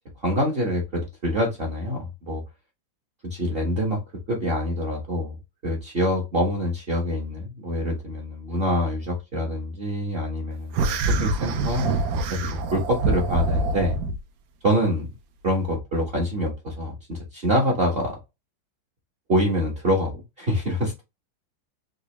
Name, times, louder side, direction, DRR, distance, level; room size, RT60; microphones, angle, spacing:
voice 1, 0.2-2.4 3.2-4.0 4.3-5.3 5.6-11.9 12.3-14.0 14.6-15.1 15.4-18.2 19.3-21.0, equal, 40° right, 0.9 m, -25 dB
sound 1, 10.7-14.2, right 2 dB, 70° right, 0.8 m, -25 dB
3.9 x 2.2 x 3.1 m
omnidirectional pair, 2.0 m